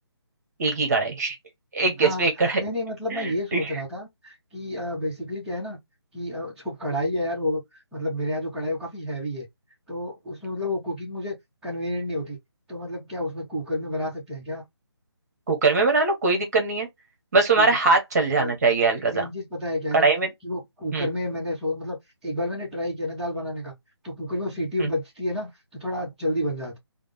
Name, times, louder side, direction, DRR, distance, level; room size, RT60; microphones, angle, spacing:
voice 1, 0.6-1.4 1.7-2.6 3.1-3.7 15.5-16.9 17.3-19.2 19.9-20.3 20.9-21.1 24.8-24.9, right 3 dB, 40° right, 1.2 m, -22 dB
voice 2, 2.0-5.8 6.1-7.6 7.9-9.5 9.9-11.4 11.6-12.4 12.7-14.6 17.6-17.7 18.4-18.7 19.1-20.1 20.4-23.7 24.0-26.8, left 1 dB, 5° right, 1.1 m, -30 dB
3.5 x 2.2 x 3.3 m
figure-of-eight pair, 150°, 14 cm